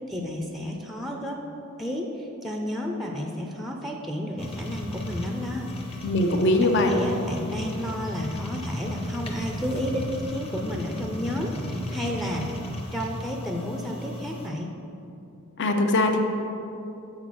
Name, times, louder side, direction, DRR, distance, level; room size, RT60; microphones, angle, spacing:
voice 1, 0.1-1.4 1.8-6.1 6.6-12.5 12.9-14.7, equal, ahead, 1 dB, 0.5 m, -32 dB
sound 1, 4.4-14.5, left 1 dB, 30° left, 0.9 m, -35 dB
voice 2, 6.0-6.9 15.6-16.2, left 1 dB, 55° left, 5 dB, 0.7 m, -21 dB
6.7 x 5.8 x 6.1 m, 2.8 s
head